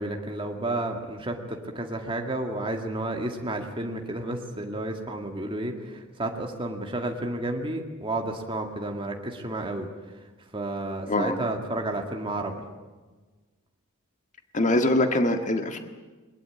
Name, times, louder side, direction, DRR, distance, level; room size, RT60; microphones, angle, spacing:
voice 1, 0.0-10.2 10.5-12.5, right 1 dB, 25° right, 2 dB, 2.1 m, -31 dB
voice 2, 11.1-11.4 14.5-15.8, left 1 dB, 35° left, 6 dB, 1.7 m, -23 dB
21.0 x 21.0 x 8.9 m, 1.3 s
head